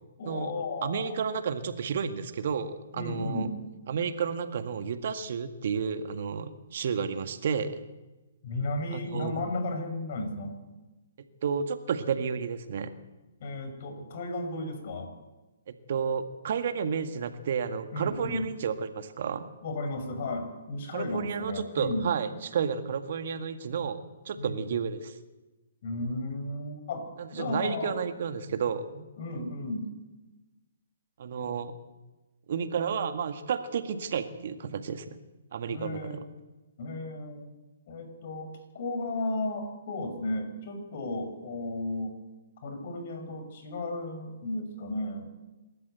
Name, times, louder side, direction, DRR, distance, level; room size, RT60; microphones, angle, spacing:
voice 1, 0.2-1.1 3.0-3.6 8.4-10.6 13.4-15.1 17.9-18.4 19.6-22.1 24.4-24.7 25.8-28.0 29.2-29.9 31.4-31.6 35.7-36.2 36.8-37.5 37.9-42.2 42.6-45.3, left 2 dB, 50° left, 6 dB, 6.2 m, -34 dB
voice 2, 0.8-3.5 3.9-7.8 8.9-9.4 11.4-12.9 15.7-19.5 20.9-24.0 24.3-25.1 27.2-29.1 31.2-31.7 32.5-35.2 35.5-36.2, right 6 dB, 55° right, 9 dB, 1.8 m, -31 dB
27.0 x 13.5 x 8.2 m, 1.1 s
figure-of-eight pair, 130°, 0 cm